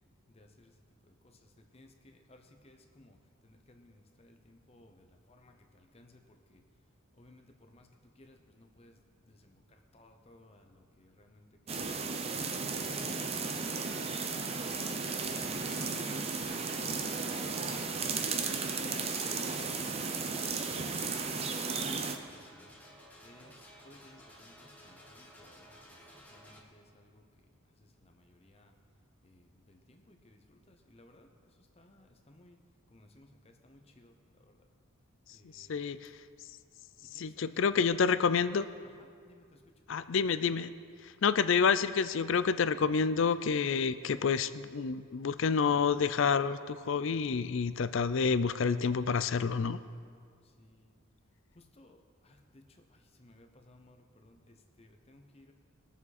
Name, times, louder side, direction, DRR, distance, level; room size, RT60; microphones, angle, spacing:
voice 1, 0.3-0.7 1.0-3.2 3.4-6.6 7.2-7.9 8.2-9.0 9.2-11.8 12.1-12.8 20.2-22.7 23.2-25.7 26.3-27.2 27.8-28.7 29.2-32.6 32.9-34.1 34.4-34.6 35.3-35.8 37.1-38.3 38.8-39.6 50.6-51.0 51.5-55.5, left 1 dB, 30° left, 4 dB, 0.8 m, -61 dB
sound 1, 11.7-22.2, right 4 dB, 30° right, 0.6 m, -34 dB
sound 2, 13.4-26.6, equal, 10° left, 1.3 m, -55 dB
voice 2, 35.5-36.0 37.2-38.7 39.9-40.7 41.2-49.8, left 5 dB, 60° left, 13 dB, 0.4 m, -28 dB
21.0 x 7.3 x 4.2 m, 2.1 s
head